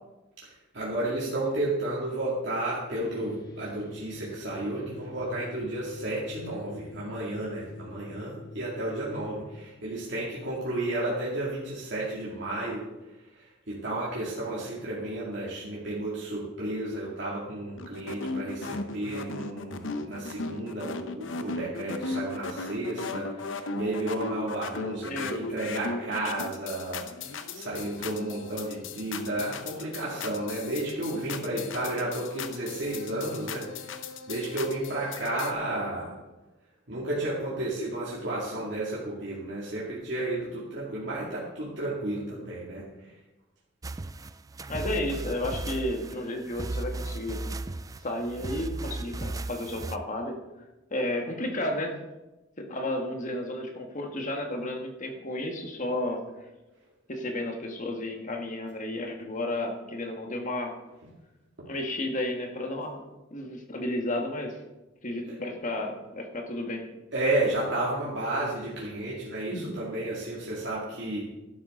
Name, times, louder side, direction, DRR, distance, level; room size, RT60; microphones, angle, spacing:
voice 1, 0.7-12.9 13.7-33.9 34.3-36.1 36.9-42.8 67.1-71.2, right 1 dB, 65° right, -7 dB, 2.5 m, -32 dB
sound 1, 2.9-9.6, left 1 dB, 60° left, 5.0 m, -45 dB
sound 2, 17.8-35.5, left 3 dB, 85° left, 0.8 m, -37 dB
voice 2, 25.0-25.6 44.7-47.5 48.0-50.4 50.9-52.0 52.6-56.2 57.1-60.7 61.6-63.0 63.3-64.6 65.0-66.8 69.5-69.7, left 1 dB, 45° left, 3 dB, 1.7 m, -32 dB
sound 3, 43.8-50.0, right 2 dB, 20° right, 0.3 m, -36 dB
12.0 x 11.5 x 3.9 m, 1.0 s
head